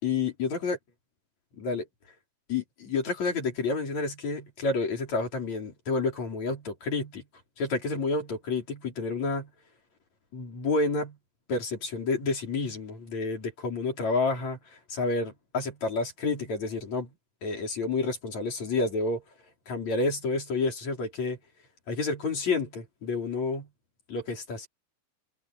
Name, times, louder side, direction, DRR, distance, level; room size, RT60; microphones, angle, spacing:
voice 1, 0.0-0.8 1.5-1.9 2.5-7.2 7.6-9.5 10.3-11.2 11.5-17.1 17.4-19.2 19.7-21.4 21.9-23.7 24.1-24.7, left 3 dB, 35° left, 5.5 m, -29 dB
omnidirectional pair, 5.7 m